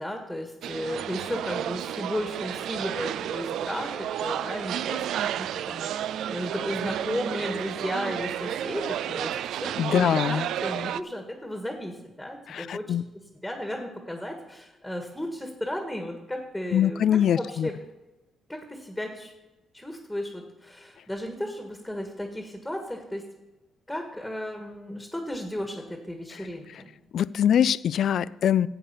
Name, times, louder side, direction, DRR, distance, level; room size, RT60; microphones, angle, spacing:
voice 1, 0.0-5.0 5.4-12.9 13.4-17.0 17.4-17.7 18.5-19.3 19.7-23.3 23.9-26.9, left 1 dB, 5° left, 3 dB, 1.8 m, -34 dB
sound 1, 0.6-11.0, right 10 dB, 80° right, 0.3 m, -31 dB
voice 2, 9.8-10.5 12.5-13.0 16.7-17.7 26.4-26.5 27.1-28.7, left 9 dB, 70° left, 19 dB, 0.3 m, -23 dB
11.0 x 8.4 x 5.7 m, 1.0 s
cardioid pair, 85°, 0 cm